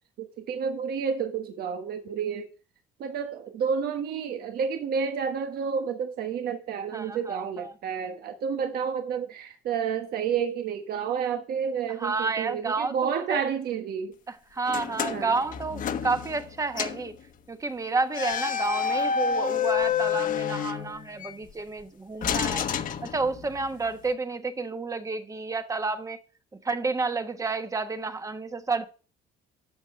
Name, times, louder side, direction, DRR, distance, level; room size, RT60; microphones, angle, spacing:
voice 1, 0.2-2.5 3.0-14.1 15.1-15.4, right 7 dB, 65° right, 1.3 m, -30 dB
voice 2, 6.9-7.7 11.9-13.4 14.3-17.2 17.5-22.7 23.0-26.2 26.6-28.9, right 3 dB, 20° right, 1.2 m, -30 dB
sound 1, 14.7-16.5 16.8-17.1 18.1-21.3 22.2-23.6, left 7 dB, 50° left, 1.2 m, -29 dB
12.0 x 7.4 x 3.2 m
cardioid pair, 110°, 17 cm